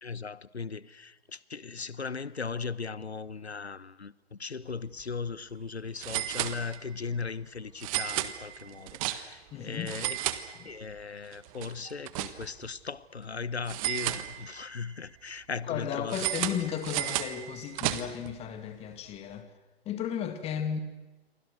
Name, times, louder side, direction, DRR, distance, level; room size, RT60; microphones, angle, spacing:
voice 1, 0.0-10.2 10.6-16.2, left 5 dB, 85° left, 1.0 m, -38 dB
sound 1, 4.8-5.0 5.3-5.4 6.0-7.0 7.8-9.5 9.8-11.0 11.3-12.7 13.7-14.8 16.1-18.3, right 15 dB, 35° right, 1.5 m, -33 dB
voice 2, 9.5-9.9 10.6-10.7 15.6-19.5 19.9-20.8, left 8 dB, 20° left, 2.1 m, -34 dB
29.0 x 24.0 x 6.4 m
figure-of-eight pair, 125°, 32 cm